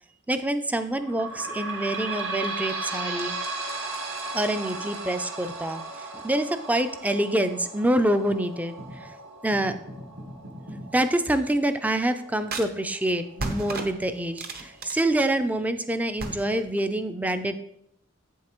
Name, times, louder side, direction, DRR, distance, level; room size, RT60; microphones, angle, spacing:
voice 1, 0.3-3.4 4.3-9.1 9.4-9.8 10.7-17.6, right 1 dB, 10° right, 10 dB, 0.4 m, -26 dB
sound 1, 0.9-14.1 14.7-14.8 15.0-15.1 15.9-16.0, right 3 dB, 90° right, 1.7 m, -36 dB
sound 2, 8.8-9.1 9.5-11.0 12.5-12.7 13.4-15.6 16.2-16.7, right 2 dB, 50° right, 0.8 m, -36 dB
8.4 x 7.2 x 3.0 m, 0.75 s
head